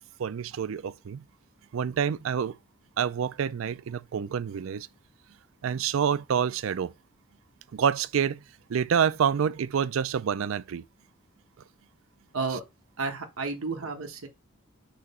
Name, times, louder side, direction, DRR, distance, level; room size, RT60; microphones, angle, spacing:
voice 1, 0.2-1.2 1.7-2.6 3.0-4.9 5.6-6.9 7.7-8.4 8.7-10.8, right 7 dB, 70° right, 0.4 m, -27 dB
voice 2, 13.0-14.3, right 4 dB, 85° right, 1.1 m, -32 dB
6.1 x 2.9 x 5.4 m
head